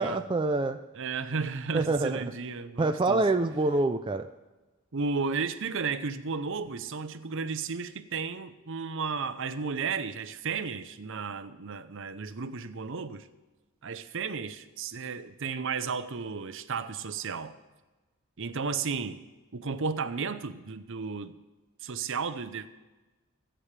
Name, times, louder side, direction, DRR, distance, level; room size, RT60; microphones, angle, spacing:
voice 1, 0.0-0.8 1.7-2.3 2.8-4.3, right 2 dB, 20° right, 7 dB, 0.4 m, -26 dB
voice 2, 0.9-3.2 4.9-13.3 13.8-17.6 18.4-19.2 19.5-21.3 21.8-22.7, right 5 dB, 60° right, 12 dB, 0.7 m, -33 dB
25.5 x 8.9 x 3.4 m, 1.1 s
head